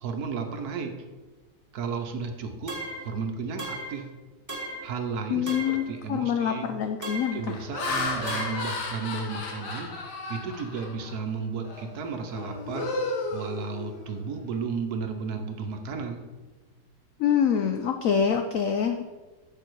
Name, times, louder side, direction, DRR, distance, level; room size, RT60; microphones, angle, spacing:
voice 1, 0.0-1.0 1.7-4.1 4.8-6.7 7.3-9.9 10.3-12.9 13.3-16.2, right 5 dB, 65° right, 5 dB, 1.2 m, -33 dB
sound 1, 2.7-3.1 3.6-4.0 4.5-4.9 5.5-5.9 7.0-7.5 8.3-8.7, right 1 dB, 15° right, 0.9 m, -36 dB
voice 2, 5.3-7.6 17.2-19.0, left 8 dB, 85° left, 6 dB, 0.7 m, -26 dB
Laughter, 5.6-5.9 6.5-6.8 7.4-11.2 11.6-11.9 12.3-14.2, left 2 dB, 70° left, 1.7 m, -33 dB
6.9 x 5.8 x 4.6 m, 1.2 s
omnidirectional pair, 2.0 m